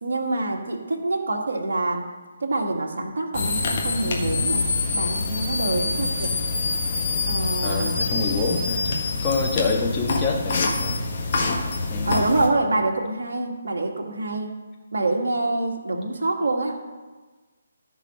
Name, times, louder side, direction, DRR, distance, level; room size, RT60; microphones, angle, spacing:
voice 1, 0.0-2.1 2.4-4.6 4.9-6.3 7.2-8.0 12.0-14.5 14.9-16.8, right 2 dB, 60° right, 1 dB, 1.8 m, -26 dB
sound 1, 3.3-12.5, left 3 dB, 40° left, 1.6 m, -25 dB
voice 2, 7.6-11.1 11.9-12.2, left 3 dB, 15° left, -1 dB, 1.6 m, -26 dB
14.0 x 5.1 x 5.7 m, 1.3 s
figure-of-eight pair, 145°, 0 cm